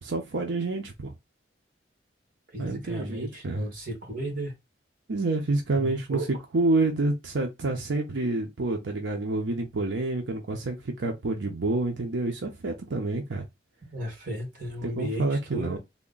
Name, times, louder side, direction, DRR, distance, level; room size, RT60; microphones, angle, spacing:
voice 1, 0.0-1.1 2.6-3.7 5.1-13.4 14.8-15.8, right 2 dB, 85° right, 0.7 m, -28 dB
voice 2, 2.5-4.5 5.8-6.3 13.9-15.8, right 1 dB, 50° right, 1.9 m, -34 dB
3.5 x 2.2 x 3.8 m
head